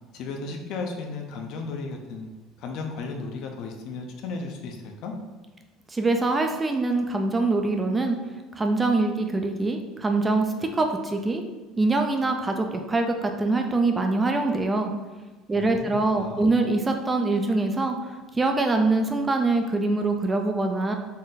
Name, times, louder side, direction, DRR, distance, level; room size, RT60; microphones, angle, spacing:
voice 1, 0.1-2.3 2.6-5.1 15.5-16.5, left 3 dB, 60° left, 2 dB, 0.6 m, -35 dB
voice 2, 5.9-8.2 8.5-11.4 11.8-14.9 15.5-21.0, right 3 dB, 15° right, 4 dB, 0.3 m, -24 dB
4.1 x 2.6 x 3.8 m, 1.2 s
cardioid pair, 145°, 0 cm